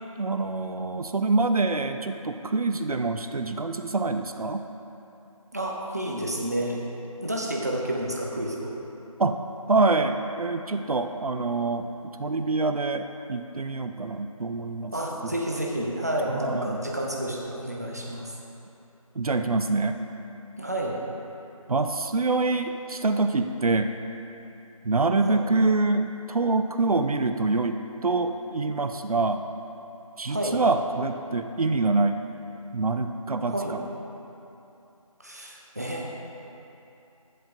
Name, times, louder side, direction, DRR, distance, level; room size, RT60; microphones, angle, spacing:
voice 1, 0.2-4.6 9.2-9.4 9.7-11.9 12.2-14.9 15.2-15.4 16.3-16.8 19.2-19.9 21.7-23.9 24.8-29.4 30.2-32.2 32.7-33.8, right 3 dB, 80° right, 7 dB, 0.6 m, -25 dB
voice 2, 5.5-6.8 7.2-8.7 14.9-18.3 20.6-21.0 25.2-25.4 30.3-30.6 33.5-33.8 35.2-36.1, right 1 dB, 25° right, -1 dB, 0.7 m, -30 dB
14.0 x 7.8 x 2.6 m, 2.9 s
figure-of-eight pair, 175°, 19 cm